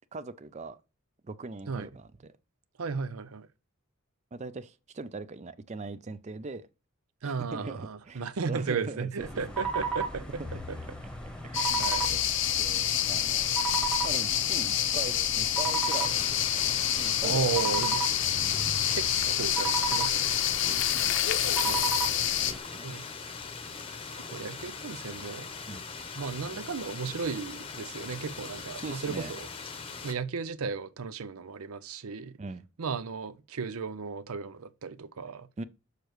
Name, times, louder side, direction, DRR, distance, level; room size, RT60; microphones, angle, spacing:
voice 1, 0.1-0.8 1.2-2.3 4.3-6.7 7.2-9.3 10.4-10.5 11.4-12.2 12.6-13.5 14.0-17.4 18.4-18.7 20.7-21.1 22.4-23.0 25.7-25.9 28.8-29.3 32.4-32.6 35.6-35.7, right 3 dB, 30° right, 0.4 m, -41 dB
voice 2, 2.8-3.5 7.2-10.2 10.7-10.8 11.8-12.1 17.2-18.1 18.9-20.3 21.6-21.9 22.8-23.1 24.3-25.5 26.2-29.5 30.0-32.3 32.8-35.5, right 5 dB, 80° right, 0.6 m, -35 dB
sound 1, 9.2-22.6, right 4 dB, 5° left, 1.1 m, -35 dB
sound 2, 11.5-22.5, left 11 dB, 60° left, 0.7 m, -27 dB
sound 3, 15.9-30.1, left 5 dB, 25° left, 0.8 m, -41 dB
6.7 x 6.5 x 3.1 m
head